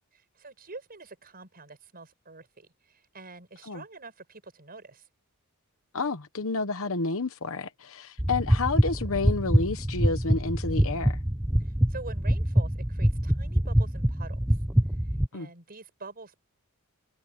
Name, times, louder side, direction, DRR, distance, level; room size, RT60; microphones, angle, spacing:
voice 1, 0.1-5.1 11.6-14.6 15.3-16.4, right 3 dB, 45° right, 6.5 m, -46 dB
voice 2, 5.9-11.2 15.3-15.5, left 3 dB, 65° left, 1.1 m, -30 dB
sound 1, 8.2-15.3, equal, 5° right, 1.2 m, -25 dB
head